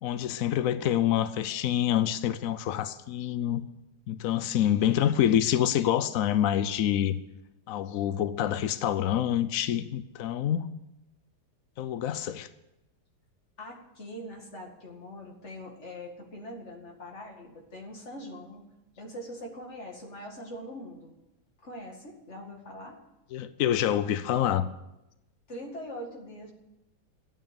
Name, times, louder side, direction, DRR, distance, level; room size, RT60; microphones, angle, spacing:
voice 1, 0.0-3.7 4.1-7.2 7.7-10.7 11.8-12.5 23.3-24.6, left 11 dB, 85° left, 13 dB, 0.7 m, -26 dB
voice 2, 13.6-18.6 19.0-21.1 21.6-23.0 25.5-26.5, equal, 35° left, 2 dB, 2.3 m, -42 dB
13.0 x 8.9 x 8.3 m, 0.94 s
omnidirectional pair, 2.2 m